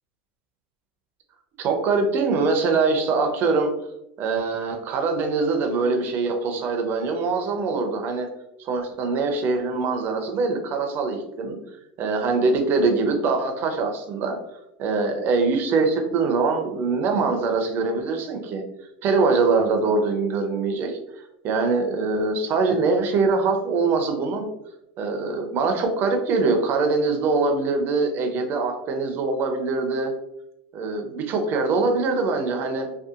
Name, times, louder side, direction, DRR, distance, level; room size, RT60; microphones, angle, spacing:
voice 1, 1.6-3.7 4.2-8.3 8.6-11.6 12.0-14.4 14.8-18.6 19.0-21.0 21.4-24.5 25.0-30.1 30.7-32.9, right 4 dB, 40° right, 4 dB, 0.4 m, -23 dB
2.7 x 2.2 x 2.4 m, 0.86 s
supercardioid pair, 125°, 5 cm